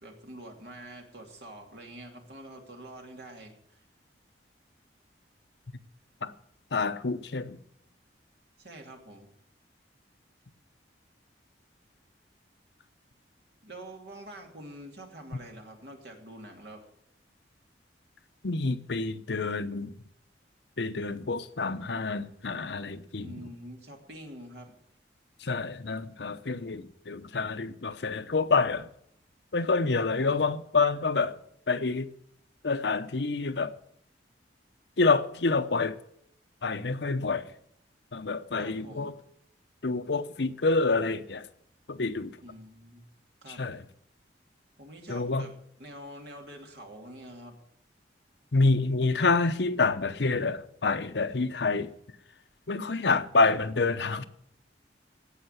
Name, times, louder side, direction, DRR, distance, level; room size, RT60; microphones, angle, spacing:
voice 1, 0.0-3.8 8.6-9.3 13.6-16.9 23.2-24.7 29.9-30.4 38.6-39.1 42.4-43.0 43.4-43.7 44.8-45.5 45.8-47.6, right 1 dB, 60° right, 2.8 m, -46 dB
voice 2, 6.7-7.6 18.4-19.9 20.8-23.3 25.4-28.9 29.5-31.3 31.7-32.1 32.6-33.7 35.0-36.0 36.6-37.5 38.1-39.1 39.8-41.5 41.9-42.4 43.5-43.8 45.1-45.5 48.5-51.9 52.7-54.3, left 3 dB, 70° left, 0.8 m, -27 dB
17.0 x 5.7 x 9.7 m
head